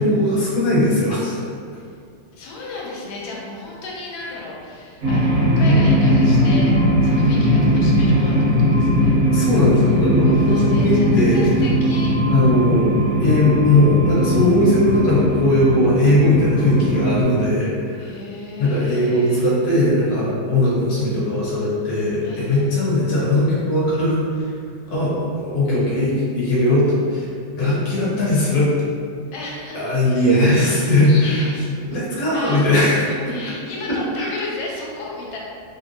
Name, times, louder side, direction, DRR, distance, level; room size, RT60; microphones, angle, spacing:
voice 1, 0.0-1.4 5.6-5.8 9.3-11.4 12.3-12.9 13.2-18.1 18.6-24.5 24.9-28.7 29.7-31.4 31.9-33.0 34.2-34.3, left 1 dB, 55° left, -7 dB, 0.9 m, -18 dB
voice 2, 2.3-8.4 8.7-9.1 10.2-12.1 17.9-19.5 22.2-22.7 29.3-30.4 30.8-31.7 32.3-35.4, left 2 dB, 75° left, -4 dB, 1.2 m, -34 dB
sound 1, 5.0-17.2, equal, 75° right, 0.7 m, -18 dB
3.1 x 2.6 x 2.6 m, 2.2 s
omnidirectional pair, 2.4 m